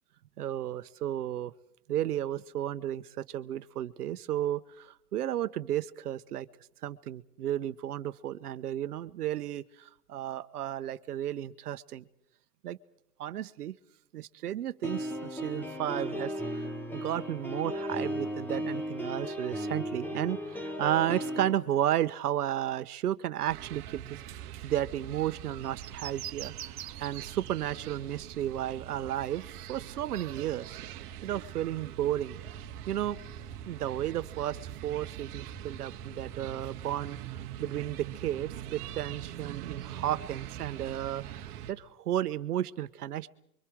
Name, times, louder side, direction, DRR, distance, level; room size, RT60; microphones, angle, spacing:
voice 1, 0.4-1.5 1.9-6.5 6.8-9.6 10.1-12.0 12.6-12.8 13.2-13.7 14.1-16.6 16.9-24.0 24.6-29.4 29.7-30.7 31.2-32.4 32.9-33.2 33.7-37.2 37.6-43.3, right 12 dB, 70° right, 12 dB, 1.2 m, -33 dB
sound 1, 14.8-21.5, equal, 5° left, 1.0 m, -35 dB
sound 2, 23.5-41.7, right 11 dB, 30° right, 2.0 m, -43 dB
sound 3, 25.6-27.5 27.8-27.9, right 10 dB, 90° right, 1.5 m, -43 dB
29.5 x 24.0 x 4.8 m, 0.76 s
hypercardioid pair, 160°, 47 cm